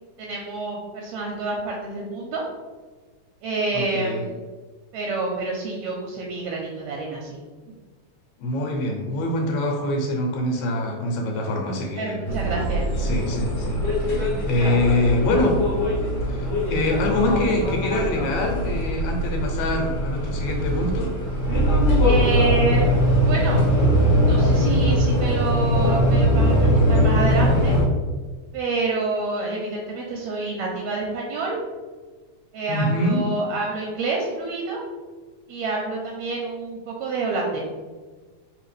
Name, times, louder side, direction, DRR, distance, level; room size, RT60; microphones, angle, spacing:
voice 1, 0.2-2.5 3.4-4.4 4.9-7.4 7.7-7.8 12.0-12.9 22.0-22.8 23.3-23.6 24.3-27.8 28.5-31.6 32.5-34.8 35.5-37.6, right 3 dB, 80° right, -1 dB, 1.8 m, -28 dB
voice 2, 3.7-4.2 8.4-12.2 13.0-13.8 14.1-15.6 16.3-21.1 32.7-33.2, left 1 dB, 80° left, 1 dB, 2.2 m, -24 dB
sound 1, 12.3-27.8, equal, 60° left, 1.5 m, -21 dB
4.0 x 3.5 x 3.2 m, 1.4 s
omnidirectional pair, 3.3 m